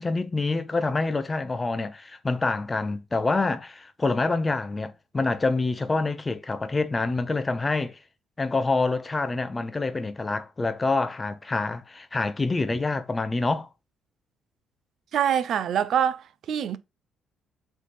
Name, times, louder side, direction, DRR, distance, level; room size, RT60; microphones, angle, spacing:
voice 1, 0.0-8.0 8.4-13.7, left 3 dB, 25° left, 0.6 m, -26 dB
voice 2, 15.1-16.8, right 9 dB, 65° right, 0.4 m, -25 dB
3.3 x 3.1 x 4.2 m
supercardioid pair, 65°, 0 cm